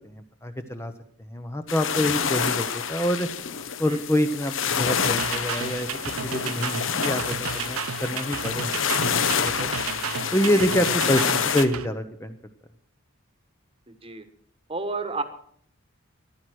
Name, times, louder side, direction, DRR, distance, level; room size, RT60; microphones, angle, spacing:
voice 1, 0.4-0.9 1.3-3.3 3.8-5.9 6.2-8.8 9.2-9.7 10.3-11.2 11.5-12.4, left 1 dB, 10° left, 7 dB, 0.8 m, -26 dB
sound 1, 1.7-11.7, left 7 dB, 65° left, 1.0 m, -27 dB
sound 2, 5.0-11.9, right 7 dB, 90° right, 0.7 m, -33 dB
voice 2, 13.9-14.2 14.7-15.2, right 3 dB, 25° right, 9 dB, 1.3 m, -32 dB
14.5 x 11.5 x 6.2 m, 0.64 s
head